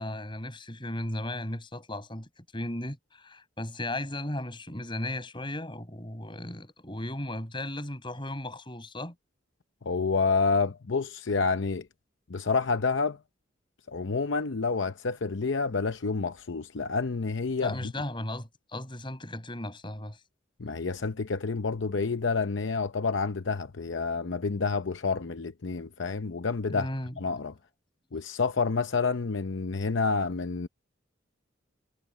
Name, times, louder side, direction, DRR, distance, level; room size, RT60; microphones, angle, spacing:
voice 1, 0.0-9.1 17.6-20.2 26.7-27.1, left 1 dB, 25° left, 7.5 m, -36 dB
voice 2, 9.8-11.9 12.3-13.2 13.9-17.9 20.6-26.9 27.2-27.5 28.1-30.7, left 4 dB, 70° left, 0.7 m, -28 dB
head